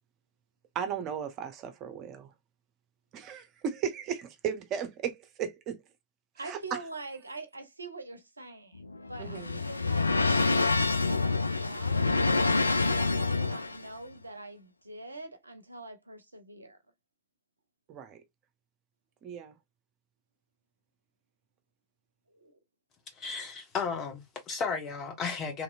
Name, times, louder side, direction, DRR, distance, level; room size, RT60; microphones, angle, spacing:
voice 1, 0.7-2.3 3.1-5.8 6.4-6.8 9.2-9.6 17.9-18.2 19.2-19.5, right 8 dB, 35° right, 0.8 m, -36 dB
voice 2, 6.4-12.2 12.9-16.8 22.3-22.5, right 2 dB, 80° right, 0.6 m, -44 dB
sound 1, 8.7-13.9, left 3 dB, 80° left, 0.3 m, -27 dB
voice 3, 23.2-25.6, left 5 dB, 30° left, 1.2 m, -34 dB
3.1 x 2.9 x 2.5 m
figure-of-eight pair, 90°, 0 cm